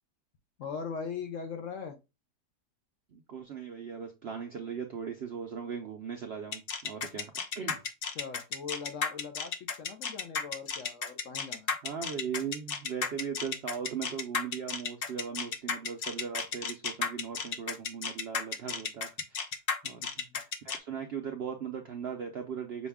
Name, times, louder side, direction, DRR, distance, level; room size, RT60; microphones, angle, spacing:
voice 1, 0.6-2.0 8.1-9.5 9.8-11.7 19.8-20.4, left 6 dB, 65° left, 6 dB, 0.9 m, -40 dB
voice 2, 3.1-7.8 11.8-19.5 19.8-22.9, right 7 dB, 65° right, 4 dB, 0.6 m, -39 dB
sound 1, 6.5-20.8, left 6 dB, 80° left, 0.5 m, -33 dB
6.2 x 2.3 x 3.4 m, 0.26 s
omnidirectional pair, 1.7 m